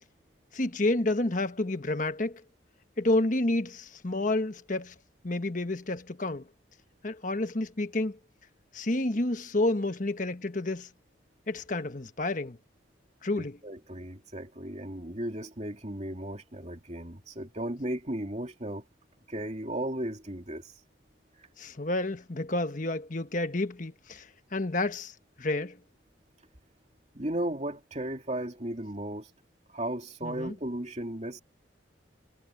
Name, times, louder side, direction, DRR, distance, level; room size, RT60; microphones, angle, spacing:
voice 1, 0.5-2.4 3.0-4.9 5.2-6.4 7.0-8.2 8.7-10.9 11.5-12.6 13.2-13.6 21.6-24.3 24.5-25.1 25.4-25.8 30.2-30.5, left 2 dB, 45° left, 1.3 m, -29 dB
voice 2, 13.4-18.8 19.3-20.7 21.4-21.5 27.1-29.3 29.7-31.4, right 1 dB, 35° right, 2.8 m, -35 dB
head